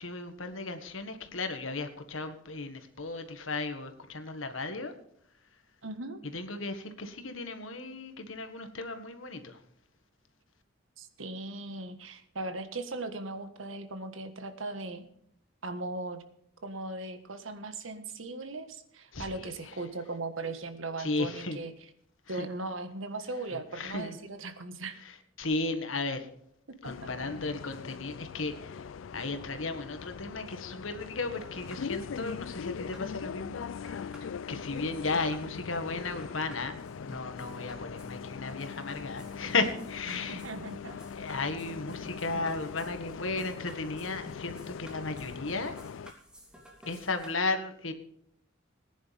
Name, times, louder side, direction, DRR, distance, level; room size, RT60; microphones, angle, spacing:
voice 1, 0.0-4.9 6.2-9.6 19.1-19.8 21.0-21.6 22.3-22.5 23.5-24.2 25.0-26.3 26.8-34.2 34.5-36.8 37.0-40.5 41.1-45.7 46.9-47.9, left 3 dB, 90° left, 8 dB, 1.7 m, -35 dB
voice 2, 5.8-6.2 11.0-15.1 15.6-16.2 16.6-21.7 22.3-25.0 26.8-27.1 40.1-40.9 42.3-42.4, right 2 dB, 90° right, 9 dB, 1.6 m, -38 dB
Bus, 26.8-46.1, left 6 dB, 75° left, 0.4 m, -41 dB
sound 1, 31.3-47.3, equal, 5° right, 3.1 m, -54 dB
19.0 x 10.5 x 3.5 m, 0.70 s
head